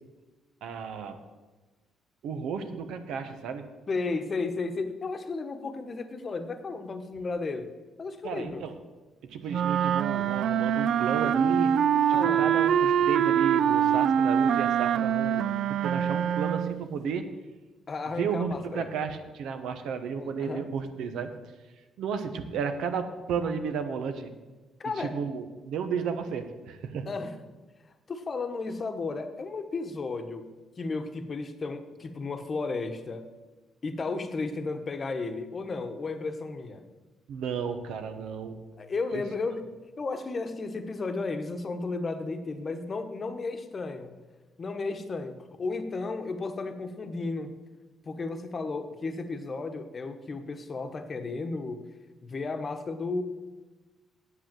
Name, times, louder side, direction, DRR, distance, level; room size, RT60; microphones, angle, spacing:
voice 1, 0.6-1.2 2.2-3.6 8.2-8.7 9.2-11.8 12.1-17.3 18.2-21.3 22.0-24.3 25.0-27.1 37.3-38.6 39.1-39.2, right 6 dB, 85° right, 8 dB, 1.0 m, -33 dB
voice 2, 3.9-7.7 8.0-8.7 12.1-12.6 17.9-18.9 20.2-20.7 24.8-25.2 27.1-27.4 28.1-33.3 33.8-36.9 38.8-44.1 44.6-47.5 48.0-51.9 52.2-53.2, left 3 dB, 35° left, 8 dB, 1.0 m, -34 dB
sound 1, 9.5-16.8, right 9 dB, 65° right, 0.3 m, -24 dB
8.3 x 7.9 x 7.5 m, 1.2 s
cardioid pair, 115°, 0 cm